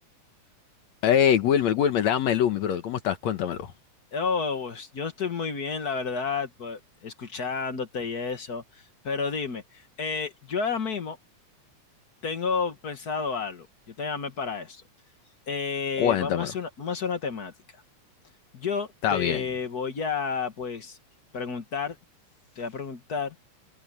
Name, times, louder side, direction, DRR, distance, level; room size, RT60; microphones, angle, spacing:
voice 1, 1.0-3.7 16.0-16.5 19.0-19.4, left 9 dB, 70° left, 2.3 m, -23 dB
voice 2, 4.1-8.6 9.0-11.2 12.2-14.8 15.5-17.5 18.5-21.0 21.3-22.0 22.5-23.3, left 5 dB, 45° left, 1.4 m, -31 dB
omnidirectional pair, 3.4 m